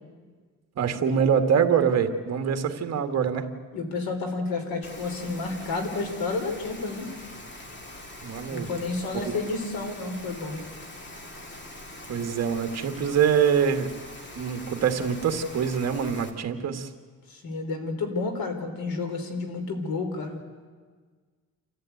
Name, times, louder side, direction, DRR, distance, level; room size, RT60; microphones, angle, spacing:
voice 1, 0.8-3.5 8.2-8.7 9.1-9.2 12.1-13.9 14.3-16.9, right 7 dB, 45° right, 7 dB, 1.7 m, -24 dB
voice 2, 3.7-7.1 8.5-10.6 17.3-20.4, left 3 dB, 85° left, 6 dB, 3.7 m, -30 dB
Rain, 4.8-16.3, left 1 dB, 30° left, 2.2 m, -43 dB
27.5 x 14.0 x 9.3 m, 1.5 s
cardioid pair, 160°, 35 cm